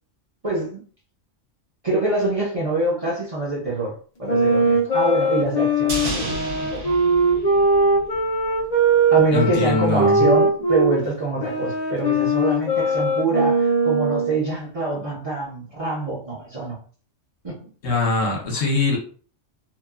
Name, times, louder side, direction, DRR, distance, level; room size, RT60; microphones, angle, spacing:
voice 1, 0.4-0.8 1.8-3.9 4.2-6.8 9.1-16.8 17.4-17.6 18.5-18.6, right 2 dB, 35° right, -6 dB, 0.8 m, -25 dB
sound 1, 4.3-11.0 11.4-14.4, right 2 dB, 45° left, 0.6 m, -20 dB
sound 2, 5.9-8.3 8.6-8.7, right 1 dB, 75° right, 1.2 m, -31 dB
voice 2, 9.3-10.3 17.8-19.0, left 3 dB, 65° left, -2 dB, 1.0 m, -22 dB
2.8 x 2.3 x 2.3 m, 0.42 s
omnidirectional pair, 1.3 m